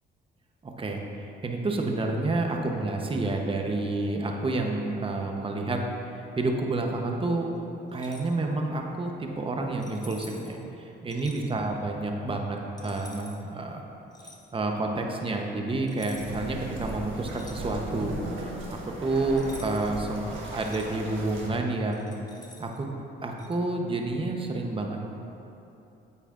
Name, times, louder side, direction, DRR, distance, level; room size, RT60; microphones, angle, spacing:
voice 1, 0.6-1.0 1.4-5.8 6.4-7.5 7.9-13.8 14.5-20.2 20.5-22.1 22.6-22.9 23.2-25.1, right 2 dB, 25° right, 2 dB, 0.9 m, -29 dB
sound 1, 7.9-8.3 9.8-10.6 11.1-11.4 12.8-13.4 14.1-14.4 15.9-16.5 16.8-18.0 19.4-19.9 20.3-20.9 21.9-22.8 23.4-23.6, left 2 dB, 20° left, 1.0 m, -49 dB
sound 2, 16.1-21.5, right 2 dB, 80° right, 1.3 m, -38 dB
9.1 x 8.2 x 2.5 m, 2.9 s
cardioid pair, 90°, 20 cm